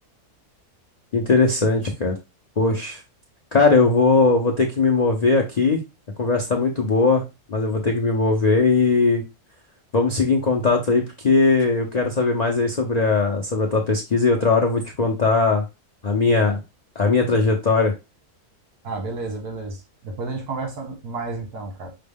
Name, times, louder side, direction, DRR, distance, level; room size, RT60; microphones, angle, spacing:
voice 1, 1.1-2.1 2.6-3.0 3.5-5.8 6.2-7.2 7.5-9.2 9.9-15.6 16.0-16.6 17.0-17.9, left 3 dB, 70° left, 0.3 m, -19 dB
voice 2, 18.8-21.9, right 3 dB, 80° right, 1.7 m, -31 dB
5.8 x 2.2 x 3.4 m
omnidirectional pair, 1.6 m